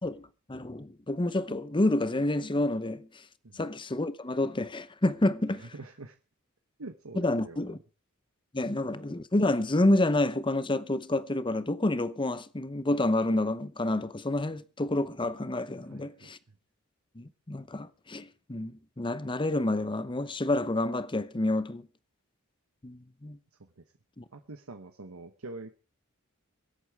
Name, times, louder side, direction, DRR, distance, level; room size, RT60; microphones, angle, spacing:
voice 1, 0.0-3.2 3.5-5.7 7.2-7.8 8.5-16.4 17.2-21.9 22.8-23.4 24.2-24.3, left 1 dB, 25° left, 0.8 m, -29 dB
voice 2, 5.6-6.2 6.8-7.8 15.9-16.3 23.8-23.9 24.3-25.8, right 2 dB, 75° right, 1.1 m, -45 dB
23.5 x 8.6 x 4.8 m
head